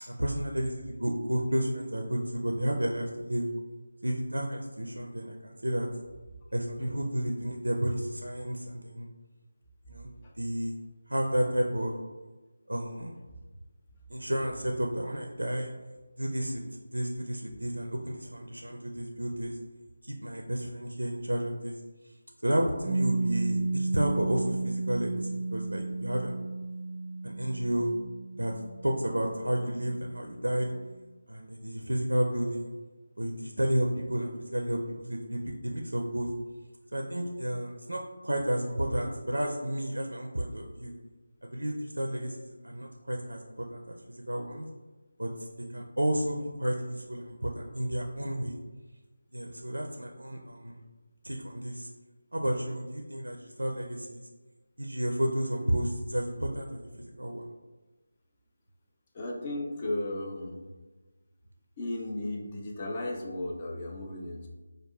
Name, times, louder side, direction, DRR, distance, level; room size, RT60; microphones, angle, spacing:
voice 1, 0.1-3.5 4.0-5.9 6.5-9.1 9.9-10.1 10.4-10.7 11.1-12.0 12.7-13.1 14.1-15.7 16.2-16.6 16.9-19.6 20.0-21.8 22.4-26.3 27.2-27.9 28.4-28.5 28.8-30.7 31.3-32.7 33.2-36.3 36.9-40.9 41.4-44.7 45.2-45.5 45.7-48.6 49.3-50.8 51.2-51.9 52.3-54.3 54.8-57.4, right 1 dB, 85° right, 1 dB, 0.4 m, -31 dB
Piano, 22.8-30.1, right 3 dB, ahead, 0.9 m, -33 dB
voice 2, 59.1-60.7 61.8-64.5, left 1 dB, 25° left, -1 dB, 0.5 m, -35 dB
4.7 x 2.3 x 2.2 m, 1.2 s
figure-of-eight pair, 160°, 0 cm